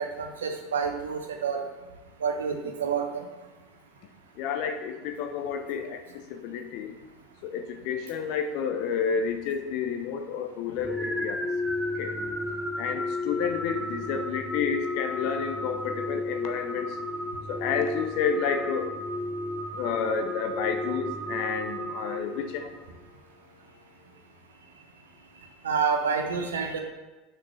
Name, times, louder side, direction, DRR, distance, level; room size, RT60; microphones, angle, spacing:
voice 1, 0.0-1.6 2.2-3.2 25.6-26.8, right 6 dB, 75° right, 3 dB, 1.1 m, -28 dB
voice 2, 4.4-6.9 7.4-11.4 12.0-12.1 12.8-17.0 17.5-18.9 19.7-22.7, left 6 dB, 55° left, 6 dB, 0.9 m, -30 dB
sound 1, 10.8-22.8, left 1 dB, 5° right, 1.0 m, -33 dB
6.1 x 4.9 x 5.9 m, 1.2 s
figure-of-eight pair, 75°, 0 cm